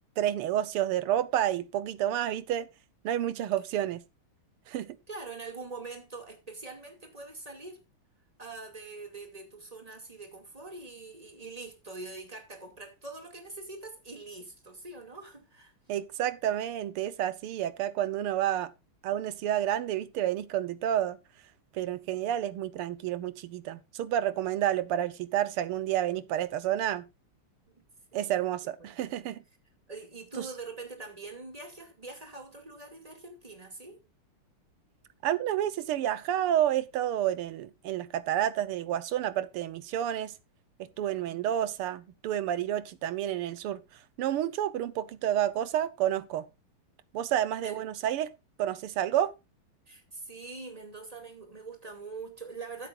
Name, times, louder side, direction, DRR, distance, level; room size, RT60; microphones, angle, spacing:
voice 1, 0.2-2.7 3.0-4.0 4.7-5.0 15.9-18.7 19.0-21.2 21.7-27.1 28.1-29.4 30.4-30.5 35.2-40.4 40.8-43.8 44.2-46.5 47.1-48.3 48.6-49.3, right 11 dB, 85° right, 1.8 m, -30 dB
voice 2, 5.1-7.8 8.4-15.7 22.0-22.3 27.7-27.8 28.1-28.4 28.8-29.1 29.9-34.0 41.0-41.4 47.6-47.8 49.9-52.9, right 3 dB, 15° right, 2.3 m, -44 dB
15.5 x 8.3 x 2.5 m
omnidirectional pair, 2.4 m